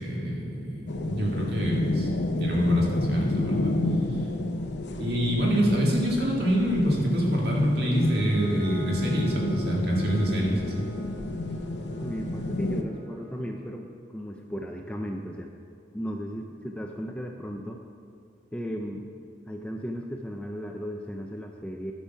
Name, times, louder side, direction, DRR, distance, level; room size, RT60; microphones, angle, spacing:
voice 1, 0.0-2.1 2.4-3.7 5.0-10.9, equal, 60° right, -3 dB, 2.0 m, -25 dB
sound 1, 0.9-12.8, left 2 dB, 70° left, 0.7 m, -30 dB
Bowed string instrument, 7.9-13.5, right 1 dB, 30° right, 1.9 m, -48 dB
voice 2, 12.0-15.5 15.9-17.8 18.5-19.1 19.5-21.9, equal, 5° left, 2 dB, 0.4 m, -36 dB
10.0 x 6.2 x 5.6 m, 2.4 s
head